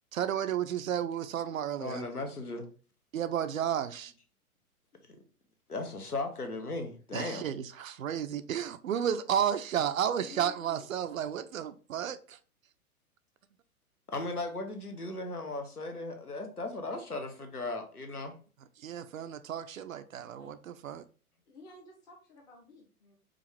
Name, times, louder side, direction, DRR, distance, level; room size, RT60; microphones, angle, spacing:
voice 1, 0.1-2.1 3.1-4.1 7.1-12.4 18.8-21.1, right 9 dB, 65° right, 0.5 m, -32 dB
voice 2, 1.8-2.7 5.7-7.5 14.1-18.3, left 2 dB, 90° left, 0.9 m, -37 dB
voice 3, 10.2-10.9 20.3-20.6 21.5-23.2, left 3 dB, 10° left, 0.5 m, -52 dB
4.9 x 2.4 x 3.3 m
figure-of-eight pair, 110°, 44 cm